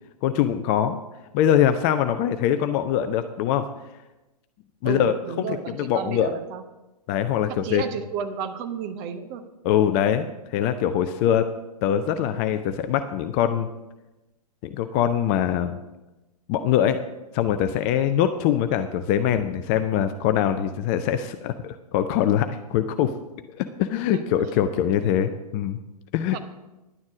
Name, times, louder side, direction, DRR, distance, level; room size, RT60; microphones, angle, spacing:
voice 1, 0.2-1.0 1.3-3.6 4.8-5.1 5.8-6.3 7.1-7.8 9.6-11.5 11.8-13.7 14.7-15.8 16.5-17.0 17.3-23.1 23.6-25.8 26.1-26.4, left 10 dB, 25° left, 9 dB, 0.4 m, -23 dB
voice 2, 4.8-6.6 7.5-9.4 24.1-24.2 26.3-26.4, right 7 dB, 30° right, 9 dB, 0.9 m, -32 dB
11.0 x 9.5 x 5.0 m, 1.0 s
figure-of-eight pair, 115°, 20 cm